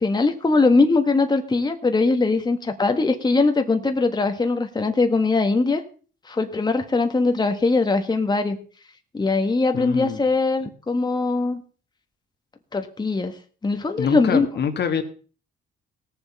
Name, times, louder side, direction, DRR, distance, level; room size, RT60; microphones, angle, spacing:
voice 1, 0.0-5.8 6.2-8.6 9.1-11.6 12.7-13.4 13.6-14.5, left 3 dB, 20° left, 6 dB, 1.4 m, -21 dB
voice 2, 9.7-10.2 14.0-15.0, left 7 dB, 60° left, 7 dB, 1.7 m, -25 dB
17.5 x 7.1 x 5.4 m, 0.39 s
cardioid pair, 90°, 20 cm